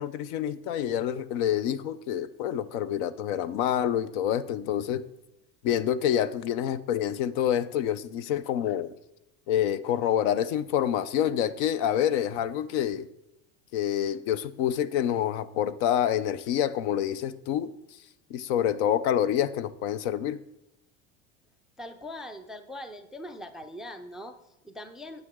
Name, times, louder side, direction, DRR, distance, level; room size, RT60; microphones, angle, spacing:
voice 1, 0.0-5.0 5.6-8.9 9.5-13.1 13.7-17.7 18.3-20.4, left 10 dB, 65° left, 15 dB, 0.7 m, -27 dB
voice 2, 21.8-25.3, left 1 dB, ahead, 9 dB, 0.3 m, -41 dB
9.6 x 7.9 x 3.6 m, 0.88 s
supercardioid pair, 115°, 38 cm